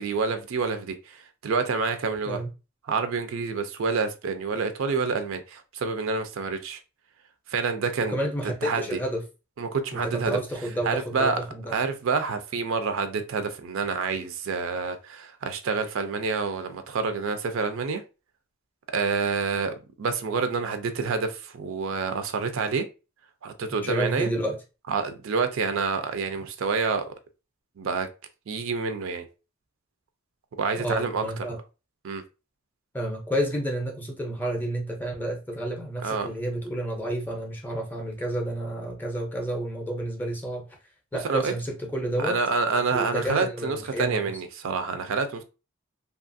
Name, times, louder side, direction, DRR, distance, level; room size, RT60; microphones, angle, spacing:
voice 1, 0.0-2.4 2.9-6.8 7.5-8.2 8.6-9.0 9.6-10.4 10.8-11.4 11.7-18.0 18.9-22.9 23.4-24.3 24.9-27.1 27.8-28.1 28.5-29.3 30.6-31.5 32.0-32.2 36.0-36.3 41.2-41.5 42.2-45.4, right 4 dB, 65° right, 0.4 m, -28 dB
voice 2, 8.1-9.2 9.9-11.8 23.7-24.6 30.7-31.6 32.9-40.7 41.1-42.4 42.9-44.3, right 1 dB, 10° left, 0.5 m, -30 dB
2.8 x 2.4 x 2.6 m
head